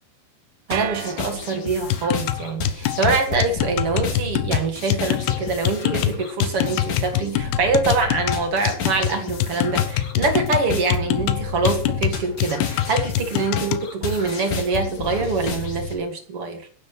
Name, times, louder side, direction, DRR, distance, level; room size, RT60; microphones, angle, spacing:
sound 1, 0.7-15.9, left 4 dB, 55° left, 4.3 m, -31 dB
voice 1, 0.7-16.7, right 4 dB, 40° right, 5 dB, 2.5 m, -24 dB
sound 2, 0.7-2.1, right 12 dB, 90° right, 3.2 m, -33 dB
sound 3, 1.9-13.9, left 13 dB, 85° left, 2.8 m, -25 dB
23.5 x 11.0 x 3.3 m, 0.41 s
omnidirectional pair, 4.6 m